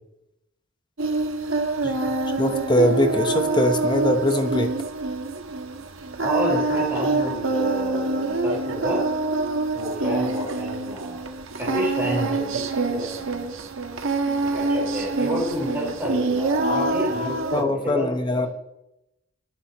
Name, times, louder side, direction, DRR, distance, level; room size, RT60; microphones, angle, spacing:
Singing, 1.0-17.6, right 3 dB, 65° right, 1.4 m, -26 dB
voice 1, 2.4-4.7 12.0-12.3 17.2-18.5, left 1 dB, 20° left, 7 dB, 0.9 m, -22 dB
voice 2, 6.2-9.0 9.7-11.2 11.6-13.4 14.4-18.5, equal, 10° right, -8 dB, 4.4 m, -29 dB
22.5 x 9.8 x 3.0 m, 0.87 s
head